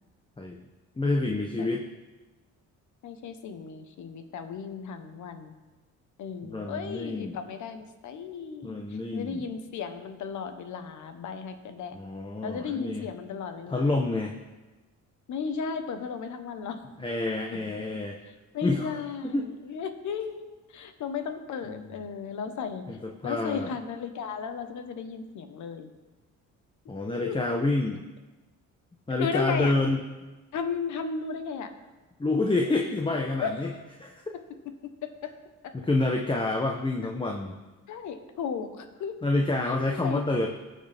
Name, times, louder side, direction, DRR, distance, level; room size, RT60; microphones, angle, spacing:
voice 1, 1.0-1.8 6.4-7.4 8.6-9.4 11.9-13.1 13.7-14.3 17.0-18.2 18.6-18.9 19.2-19.5 21.7-21.9 22.9-23.7 26.9-28.0 29.1-30.0 32.2-33.7 34.0-34.2 35.7-37.6 39.2-40.5, left 2 dB, 15° left, 1 dB, 1.0 m, -28 dB
voice 2, 3.0-5.5 6.2-12.0 12.4-14.0 15.3-16.8 18.5-22.8 23.2-25.9 27.2-27.4 29.2-29.7 30.5-31.7 33.4-33.5 35.0-35.3 35.6-35.7 37.9-39.2 39.7-40.5, left 6 dB, 75° left, 8 dB, 1.2 m, -35 dB
19.0 x 6.5 x 3.6 m, 1.2 s
cardioid pair, 90°, 30 cm